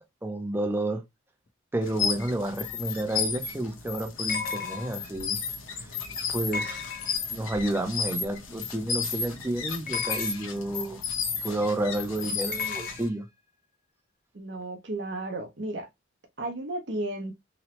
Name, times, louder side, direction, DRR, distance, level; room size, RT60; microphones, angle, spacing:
voice 1, 0.2-1.0 1.7-5.4 5.7-5.9 6.3-6.8 7.3-11.0 11.4-13.3, right 1 dB, 10° right, 0.4 m, -30 dB
sound 1, 1.8-13.1, left 5 dB, 90° left, 0.8 m, -33 dB
sound 2, 2.7-2.8 4.3-5.1 6.5-7.4 9.9-10.6 12.5-13.0, left 6 dB, 45° left, 0.5 m, -34 dB
voice 2, 14.3-15.9 16.4-17.3, right 2 dB, 60° right, 0.6 m, -33 dB
2.9 x 2.0 x 2.9 m
head